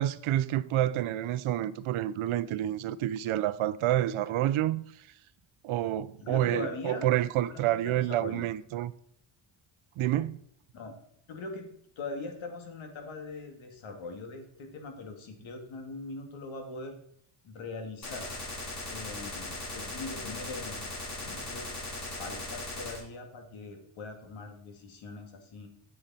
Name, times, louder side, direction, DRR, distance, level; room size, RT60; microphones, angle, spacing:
voice 1, 0.0-4.8 5.6-8.9 10.0-10.4, right 13 dB, 80° right, 0.7 m, -28 dB
voice 2, 6.2-7.0 7.5-8.5 10.7-11.0 11.3-11.7 12.0-16.9 17.4-18.2 18.9-20.9 21.2-25.7, left 3 dB, 70° left, 2.3 m, -41 dB
Gunshot gunfire, 18.0-23.0, left 2 dB, 35° left, 2.6 m, -38 dB
9.8 x 7.6 x 4.2 m
cardioid pair, 155°, 49 cm